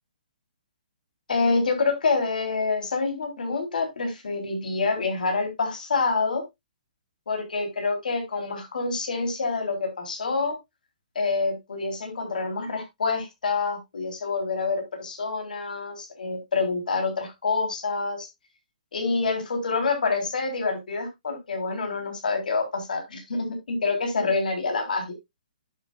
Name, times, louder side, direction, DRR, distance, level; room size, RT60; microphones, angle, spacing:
voice 1, 1.3-6.4 7.3-10.6 11.2-18.3 18.9-25.1, left 4 dB, 75° left, 3.7 m, -27 dB
11.5 x 7.4 x 2.4 m
hypercardioid pair, 170°, 5 cm